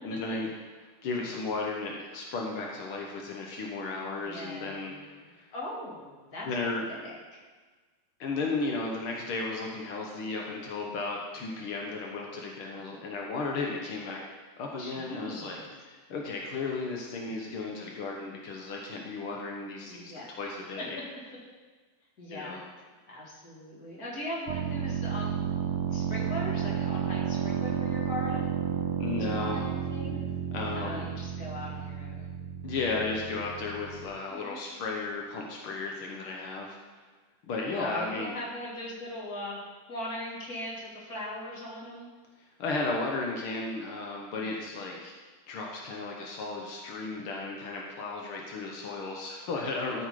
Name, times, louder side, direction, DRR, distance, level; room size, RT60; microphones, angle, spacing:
voice 1, 0.0-0.5 1.0-4.9 5.3-5.5 6.4-6.8 8.2-14.2 14.6-21.0 22.3-22.6 29.0-29.6 30.5-31.1 32.6-36.8 37.4-38.3 42.6-45.2 45.5-50.1, left 3 dB, 80° left, -1 dB, 1.2 m, -34 dB
voice 2, 4.1-6.5 6.8-7.2 14.8-15.7 19.9-20.3 22.2-22.7 23.1-25.5 25.9-28.5 29.3-30.2 30.7-32.4 34.0-34.6 37.8-39.6 39.9-42.1, left 1 dB, 30° left, -4 dB, 2.1 m, -40 dB
sound 1, 24.5-34.1, right 8 dB, 85° right, 1.5 m, -32 dB
13.0 x 6.3 x 4.9 m, 1.4 s
omnidirectional pair, 4.0 m